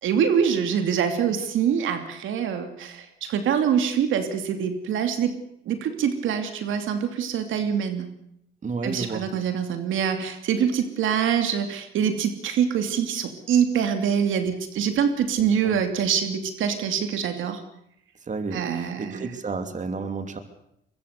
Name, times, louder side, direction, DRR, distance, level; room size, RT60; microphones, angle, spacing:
voice 1, 0.0-5.3 5.6-8.1 8.8-17.6 18.5-19.3, right 8 dB, 80° right, 7 dB, 2.8 m, -25 dB
voice 2, 8.6-9.2 15.6-15.7 18.2-20.4, right 4 dB, 40° right, 8 dB, 3.0 m, -31 dB
23.5 x 22.5 x 6.8 m, 0.76 s
cardioid pair, 90°, 20 cm